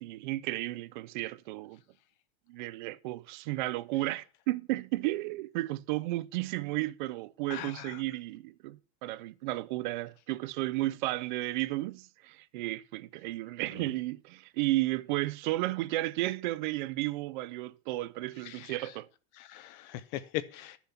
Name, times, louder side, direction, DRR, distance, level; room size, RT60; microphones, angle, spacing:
voice 1, 0.0-1.8 2.5-19.1, right 18 dB, 50° right, 0.5 m, -33 dB
voice 2, 7.5-8.0 18.4-18.9 19.3-20.8, left 14 dB, 45° left, 0.7 m, -40 dB
13.0 x 7.1 x 5.6 m
supercardioid pair, 165°, 32 cm